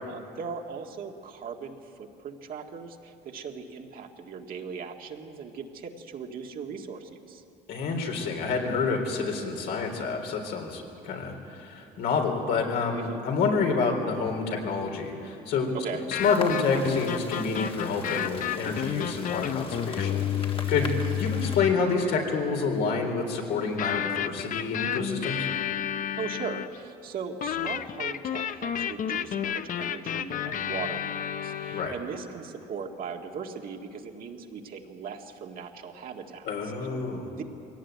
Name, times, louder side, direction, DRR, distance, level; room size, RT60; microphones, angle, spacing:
voice 1, 0.1-7.4 12.9-13.2 15.7-16.1 20.6-20.9 26.2-36.7 37.3-37.4, right 6 dB, 60° right, 2 dB, 1.9 m, -39 dB
voice 2, 7.7-15.7 16.1-25.5 31.7-31.9 36.4-37.3, left 4 dB, 75° left, 2 dB, 3.9 m, -28 dB
sound 1, 16.0-21.8 23.8-26.8 27.4-31.9, left 10 dB, 50° left, 0.8 m, -31 dB
sound 2, 16.2-21.6, left 4 dB, 30° left, 1.7 m, -40 dB
22.0 x 17.5 x 9.4 m, 2.7 s
cardioid pair, 110°, 17 cm